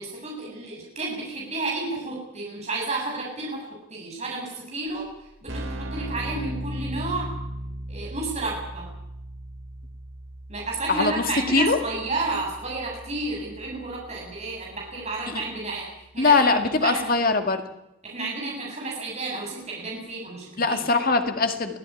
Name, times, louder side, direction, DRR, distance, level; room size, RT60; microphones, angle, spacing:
voice 1, 0.0-5.0 5.4-7.3 7.9-8.9 10.5-16.6 16.8-17.0 18.0-20.8, right 3 dB, 30° right, -3 dB, 7.9 m, -31 dB
Keyboard (musical), 4.9-5.0 5.2-15.8, right 1 dB, 65° right, 4.3 m, -38 dB
voice 2, 10.9-11.8 15.3-15.4 16.2-17.6 20.6-21.8, left 3 dB, 45° left, 7 dB, 2.1 m, -22 dB
24.5 x 16.5 x 9.9 m, 0.86 s
head